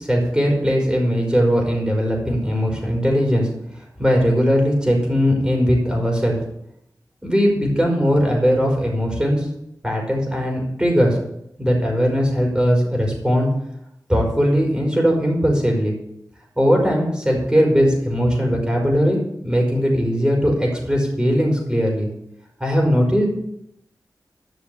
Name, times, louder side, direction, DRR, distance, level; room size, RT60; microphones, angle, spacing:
voice 1, 0.0-3.5 4.0-6.4 7.2-9.5 9.8-11.2 11.6-13.5 14.1-15.9 16.6-22.1 22.6-23.3, equal, 10° right, -1 dB, 5.3 m, -19 dB
13.0 x 6.4 x 6.9 m, 0.79 s
wide cardioid pair, 65°, 7 cm